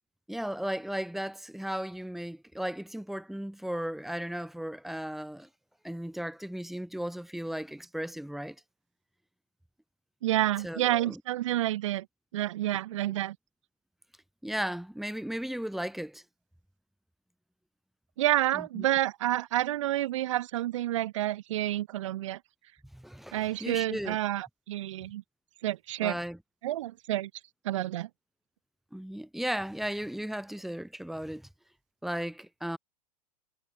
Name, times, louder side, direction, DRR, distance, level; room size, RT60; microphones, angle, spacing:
voice 1, 0.3-5.5 5.8-8.6 10.6-11.2 14.4-16.2 18.5-18.8 22.9-24.2 26.0-26.4 28.9-31.5 32.0-32.8, equal, ahead, 1.3 m, -35 dB
voice 2, 10.2-12.1 12.3-13.4 18.2-22.4 23.3-25.2 25.6-26.2 26.6-27.3 27.6-28.1, right 14 dB, 55° right, 0.6 m, -29 dB
figure-of-eight pair, 95°, 19 cm